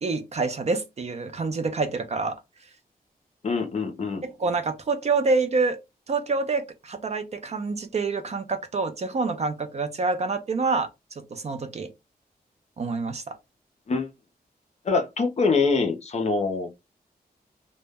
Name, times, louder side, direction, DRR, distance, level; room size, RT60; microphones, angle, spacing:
voice 1, 0.0-2.4 4.4-5.8 6.1-11.9 12.8-13.4, right 4 dB, 45° right, 0.4 m, -27 dB
voice 2, 3.4-4.2 13.9-14.1 14.8-16.8, left 4 dB, 45° left, 0.5 m, -24 dB
2.1 x 2.0 x 3.3 m
wide cardioid pair, 165°, 16 cm